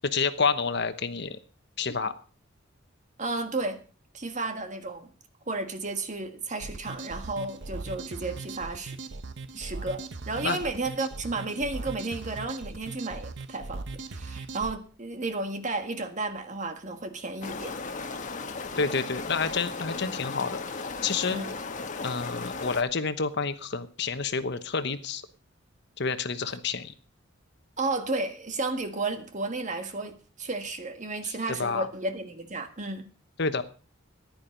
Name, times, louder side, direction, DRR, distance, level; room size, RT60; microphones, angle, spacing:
voice 1, 0.0-1.4 1.8-2.1 10.4-10.6 18.8-21.4 22.0-25.2 26.0-26.9 31.2-31.9 33.4-33.6, left 5 dB, 60° left, 1.1 m, -29 dB
voice 2, 3.2-3.8 4.1-5.1 5.5-9.0 9.5-17.8 21.3-21.5 27.8-33.1, right 3 dB, 40° right, 1.6 m, -33 dB
sound 1, 6.6-14.7, right 3 dB, 65° right, 0.9 m, -39 dB
sound 2, 17.4-22.8, left 4 dB, 40° left, 1.3 m, -36 dB
14.5 x 10.5 x 5.3 m
head